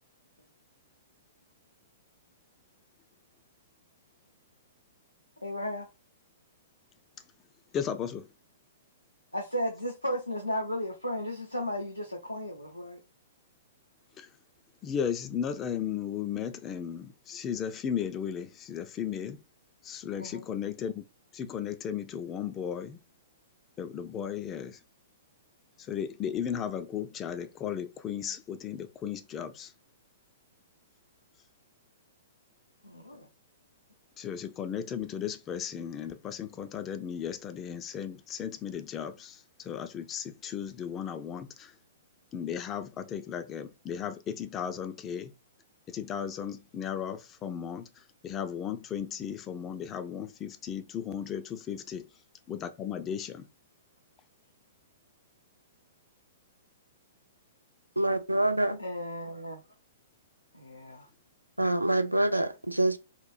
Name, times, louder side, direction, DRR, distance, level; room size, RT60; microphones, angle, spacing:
voice 1, 5.4-5.9 9.3-13.0 20.2-20.4 32.8-33.3 58.8-59.6 60.5-61.1, equal, 90° left, 0.5 m, -34 dB
voice 2, 7.7-8.3 14.2-14.3 14.8-19.4 19.8-21.0 21.3-23.0 23.8-24.8 25.8-29.7 34.2-41.8 42.3-45.3 45.9-52.1 52.5-53.5, left 8 dB, 25° left, 0.3 m, -35 dB
voice 3, 58.0-58.8 61.6-63.0, right 1 dB, 85° right, 0.3 m, -26 dB
3.0 x 2.0 x 2.3 m
figure-of-eight pair, 110°, 0 cm